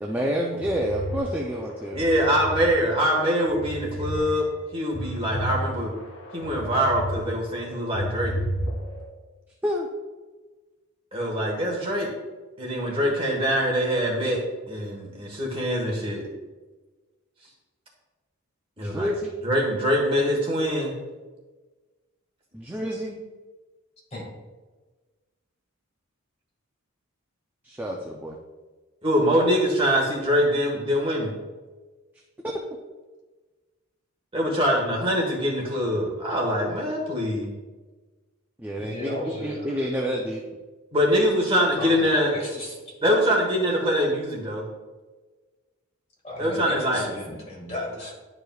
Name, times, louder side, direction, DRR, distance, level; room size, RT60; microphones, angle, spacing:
voice 1, 0.0-2.0 9.6-9.9 18.8-19.3 22.5-23.2 27.6-28.4 34.8-34.9 38.6-40.4, equal, 10° right, -1 dB, 0.4 m, -29 dB
sound 1, 0.6-2.7 3.1-4.2 4.6-7.2 7.6-9.0, equal, 70° left, 2.0 m, -32 dB
voice 2, 1.9-4.5 4.7-5.9 6.3-8.3 11.1-12.1 12.6-14.4 14.7-16.2 18.8-19.1 19.4-20.9 29.0-31.3 34.3-37.5 40.9-42.4 43.0-44.6 46.4-47.0, equal, 25° right, -2 dB, 1.3 m, -23 dB
voice 3, 38.8-39.7 41.8-43.0 46.2-48.1, left 1 dB, 30° left, -3 dB, 1.7 m, -34 dB
10.5 x 4.9 x 2.3 m, 1.3 s
head